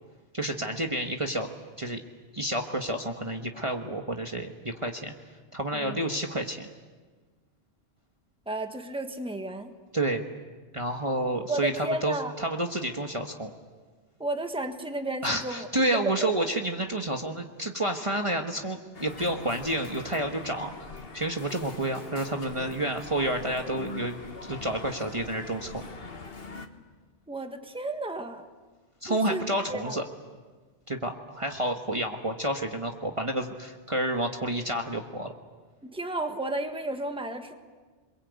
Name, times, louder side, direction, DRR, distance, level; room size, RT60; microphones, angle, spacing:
voice 1, 0.3-1.5 1.8-2.0 2.3-5.1 5.5-6.7 9.9-10.2 10.7-13.5 15.2-20.7 21.1-24.2 24.5-25.8 29.0-30.0 30.9-35.3, right 1 dB, 30° right, 3 dB, 1.4 m, -29 dB
voice 2, 8.5-9.7 11.5-12.3 14.2-15.7 16.2-16.3 27.3-28.4 29.1-29.4 29.7-30.0 35.9-37.5, right 2 dB, 5° right, 6 dB, 1.5 m, -32 dB
sound 1, 18.9-26.7, left 3 dB, 60° left, 1.8 m, -42 dB
28.5 x 22.5 x 8.3 m, 1.4 s
omnidirectional pair, 1.1 m